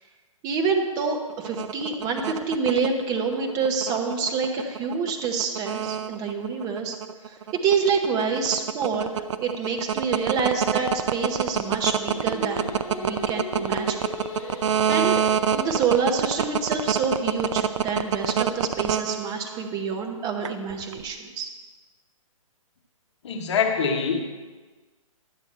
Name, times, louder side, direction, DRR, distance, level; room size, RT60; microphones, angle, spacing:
voice 1, 0.4-7.0 7.2-9.1 9.4-14.0 14.9-15.3 15.5-21.5, right 5 dB, 20° right, 2 dB, 0.9 m, -27 dB
sound 1, 1.3-19.7 20.4-21.0, right 8 dB, 60° right, 0.5 m, -25 dB
Singing, 12.0-17.2, left 1 dB, 30° left, 2.4 m, -37 dB
voice 2, 23.2-24.2, left 6 dB, 55° left, 3 dB, 1.1 m, -24 dB
11.5 x 8.1 x 4.3 m, 1.4 s
hypercardioid pair, 160°, 18 cm